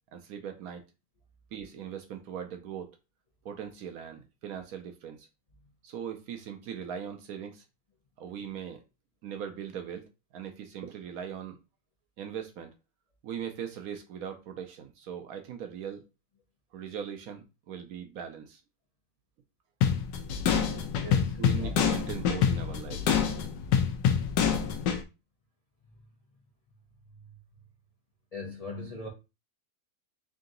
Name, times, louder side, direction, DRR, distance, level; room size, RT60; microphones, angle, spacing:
voice 1, 0.1-0.8 1.5-3.0 3.4-5.3 5.8-7.6 8.2-8.8 9.2-10.0 10.3-11.6 12.2-12.7 13.2-16.0 16.7-18.6 21.4-23.1, right 8 dB, 70° right, 1.0 m, -40 dB
sound 1, 19.8-25.0, left 7 dB, 90° left, 1.3 m, -26 dB
voice 2, 20.9-21.7 27.1-27.3 28.3-29.1, left 1 dB, 70° left, 0.3 m, -40 dB
3.7 x 2.7 x 3.8 m
omnidirectional pair, 1.8 m